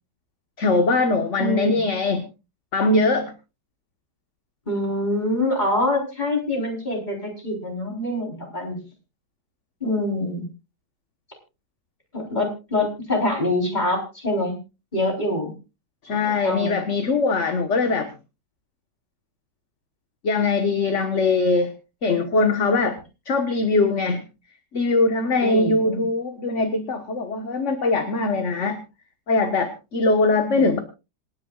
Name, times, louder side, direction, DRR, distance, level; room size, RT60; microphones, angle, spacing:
voice 1, 0.6-2.3 2.7-3.3 16.0-18.1 20.2-21.7 22.0-23.0 23.2-24.3 24.7-28.8 29.3-30.8, left 3 dB, 45° left, 6 dB, 1.6 m, -21 dB
voice 2, 1.4-1.8 4.7-8.8 9.8-10.5 12.1-14.6 14.9-15.5 16.2-16.8 25.4-26.0 30.4-30.6, left 1 dB, 25° left, 1 dB, 4.3 m, -25 dB
27.0 x 10.5 x 2.4 m, 0.29 s
omnidirectional pair, 1.8 m